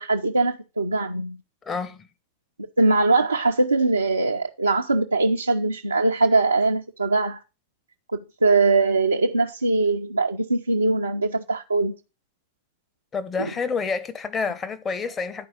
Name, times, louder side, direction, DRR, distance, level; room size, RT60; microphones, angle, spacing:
voice 1, 0.0-1.4 2.8-7.4 8.4-11.9, right 3 dB, 80° right, 0.7 m, -21 dB
voice 2, 1.7-2.1 13.1-15.5, left 5 dB, 20° left, 1.2 m, -28 dB
11.0 x 4.7 x 6.8 m
figure-of-eight pair, 90°, 0 cm